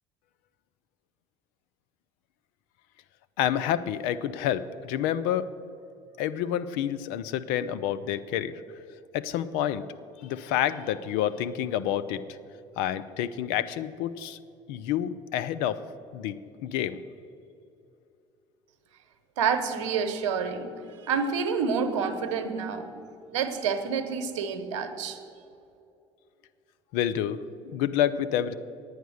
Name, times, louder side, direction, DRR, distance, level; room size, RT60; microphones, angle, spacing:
voice 1, 3.4-5.5 6.2-8.6 9.1-9.8 10.2-12.2 12.8-14.4 14.7-15.8 16.1-17.0 26.9-28.5, left 10 dB, 70° left, 14 dB, 0.5 m, -28 dB
voice 2, 19.4-22.9 23.3-25.2, right 6 dB, 85° right, 9 dB, 0.9 m, -28 dB
9.4 x 9.2 x 6.4 m, 2.7 s
hypercardioid pair, 65°, 15 cm